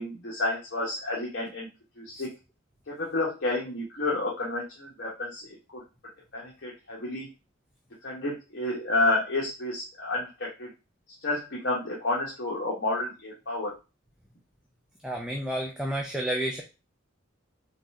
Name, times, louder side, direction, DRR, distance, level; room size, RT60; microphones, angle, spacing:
voice 1, 0.0-1.7 2.0-2.3 2.9-5.8 6.3-7.3 8.0-10.7 11.2-13.7, left 2 dB, 55° left, -4 dB, 1.1 m, -30 dB
voice 2, 15.0-16.6, right 1 dB, 5° right, 0 dB, 0.4 m, -30 dB
4.0 x 3.2 x 3.5 m, 0.29 s
head